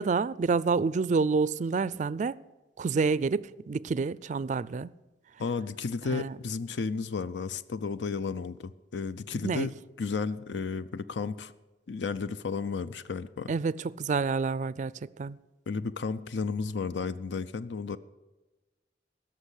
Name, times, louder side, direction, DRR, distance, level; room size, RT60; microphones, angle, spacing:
voice 1, 0.0-2.4 2.8-4.9 6.1-6.4 9.4-9.7 13.5-15.4, right 4 dB, 45° right, 0.3 m, -28 dB
voice 2, 5.4-11.5 11.9-13.5 15.7-18.0, left 4 dB, 90° left, 0.5 m, -33 dB
17.0 x 6.6 x 8.2 m
head